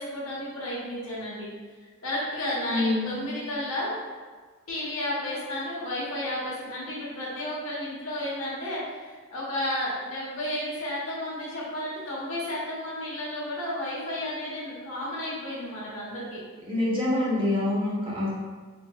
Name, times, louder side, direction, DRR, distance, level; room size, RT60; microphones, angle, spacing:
voice 1, 0.0-1.5 2.0-4.0 4.7-16.4, left 1 dB, 85° left, -6 dB, 1.2 m, -32 dB
voice 2, 2.7-3.1 16.7-18.3, left 2 dB, 25° right, -6 dB, 0.9 m, -26 dB
4.6 x 2.8 x 2.4 m, 1.5 s
head